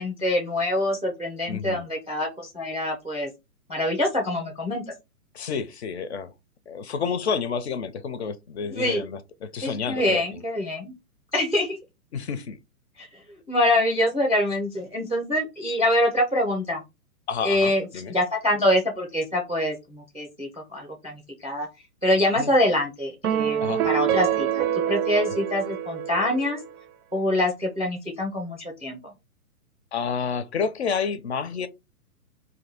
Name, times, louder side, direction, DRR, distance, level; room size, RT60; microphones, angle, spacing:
voice 1, 0.0-3.3 3.7-4.8 8.6-9.0 9.6-10.9 11.3-11.8 13.0-13.2 13.5-16.8 17.4-21.7 22.0-26.6 27.1-29.0, left 1 dB, 10° right, 0.4 m, -25 dB
voice 2, 1.5-1.8 5.3-6.3 6.7-10.2 12.1-12.6 17.3-18.1 22.4-22.5 23.6-23.8 29.9-31.7, left 6 dB, 50° left, 0.5 m, -29 dB
sound 1, 23.2-26.7, right 10 dB, 70° right, 0.5 m, -26 dB
2.6 x 2.5 x 4.2 m
hypercardioid pair, 140°, 45 cm